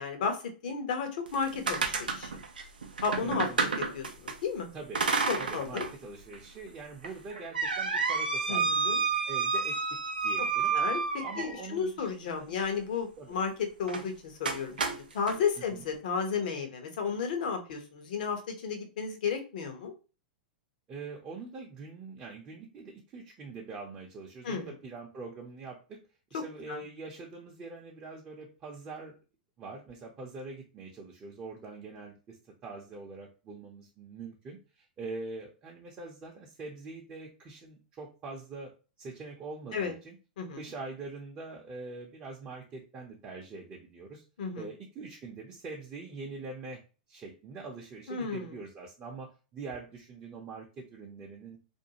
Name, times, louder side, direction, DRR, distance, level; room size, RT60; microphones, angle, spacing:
voice 1, 0.0-2.3 3.0-3.7 3.9-4.7 5.3-5.8 8.5-9.0 10.7-13.5 13.8-19.9 24.4-24.7 26.3-26.4 26.7-26.8 39.7-39.9 40.4-40.6 44.4-44.7 48.1-48.5, left 5 dB, 65° left, 5 dB, 0.8 m, -33 dB
sound 1, 1.3-4.4 4.9-5.9 6.3-6.4 7.0-11.7 13.8-14.1 14.4-15.4, right 4 dB, 85° right, 0.4 m, -30 dB
voice 2, 3.2-3.6 4.7-5.0 5.4-9.8 10.2-10.7 11.2-12.5 13.2-13.3 15.7-15.8 20.9-26.0 26.3-29.2 29.6-32.4 32.6-38.7 39.0-40.2 40.5-44.2 44.5-46.8 47.1-51.6, right 3 dB, 30° right, -2 dB, 0.6 m, -43 dB
2.5 x 2.2 x 2.8 m, 0.33 s
hypercardioid pair, 105°, 5 cm